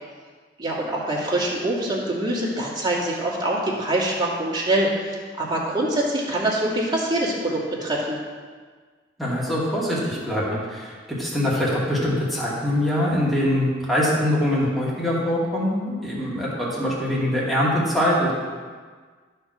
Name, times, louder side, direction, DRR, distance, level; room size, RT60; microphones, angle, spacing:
voice 1, 0.6-8.2, right 1 dB, 25° right, -4 dB, 2.1 m, -24 dB
voice 2, 9.2-18.3, left 1 dB, ahead, -7 dB, 2.5 m, -23 dB
12.5 x 4.5 x 6.6 m, 1.5 s
head